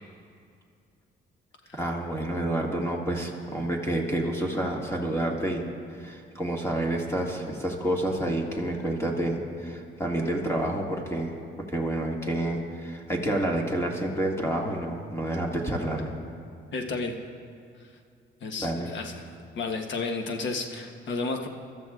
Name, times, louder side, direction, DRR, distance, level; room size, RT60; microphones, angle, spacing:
voice 1, 1.8-5.7 6.0-11.4 11.7-16.1 18.6-18.9, right 1 dB, 15° left, -1 dB, 1.9 m, -29 dB
voice 2, 16.7-17.1 17.8-17.9 18.4-21.5, left 3 dB, 65° left, 4 dB, 1.3 m, -32 dB
25.5 x 13.5 x 2.5 m, 2.4 s
cardioid pair, 90°, 20 cm